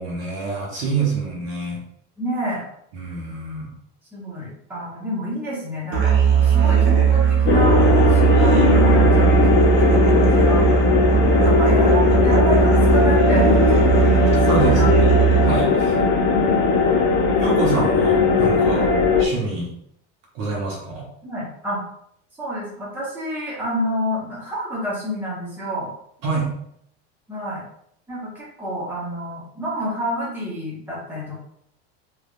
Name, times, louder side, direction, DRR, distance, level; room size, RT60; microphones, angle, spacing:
voice 1, 0.0-1.8 2.9-3.7 14.4-15.1 15.4-15.9 17.4-18.8 19.2-19.7 20.3-21.1 26.2-26.5, right 3 dB, 50° right, -2 dB, 0.9 m, -26 dB
voice 2, 2.2-2.7 4.1-10.7 11.4-14.9 15.3-15.5 15.9-16.3 16.7-16.9 18.6-18.9 21.2-21.8 22.4-25.9 27.3-27.6 28.1-31.4, equal, 5° right, -8 dB, 1.0 m, -28 dB
Musical instrument, 5.9-15.7, right 6 dB, 70° right, 1.2 m, -18 dB
sound 1, 7.5-19.2, left 4 dB, 35° left, 0.4 m, -18 dB
3.4 x 2.4 x 2.5 m, 0.70 s
cardioid pair, 155°, 33 cm